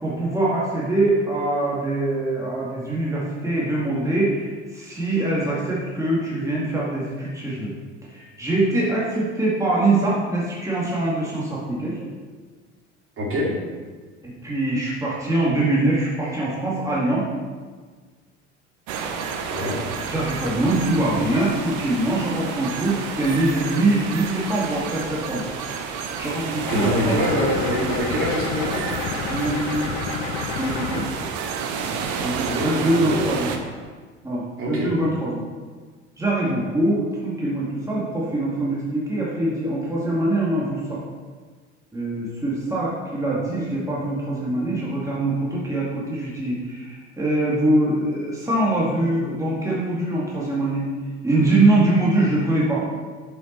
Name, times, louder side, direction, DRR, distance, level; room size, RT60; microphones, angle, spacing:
voice 1, 0.0-7.7 8.1-12.0 14.2-17.3 20.1-25.5 26.2-27.1 29.3-29.9 30.5-31.0 32.2-33.5 34.2-35.4 36.2-41.0 41.9-50.9 51.2-52.8, right 2 dB, 10° right, -6 dB, 2.0 m, -23 dB
voice 2, 13.2-13.5 19.5-19.8 26.7-28.8 32.4-32.7 33.0-33.2 34.6-34.9, equal, 40° right, -4 dB, 2.6 m, -24 dB
sound 1, 18.9-33.6, right 6 dB, 55° right, 0.9 m, -30 dB
sound 2, 26.7-31.1, left 5 dB, 65° left, 0.9 m, -30 dB
7.8 x 5.6 x 4.4 m, 1.5 s
figure-of-eight pair, 65°, 35 cm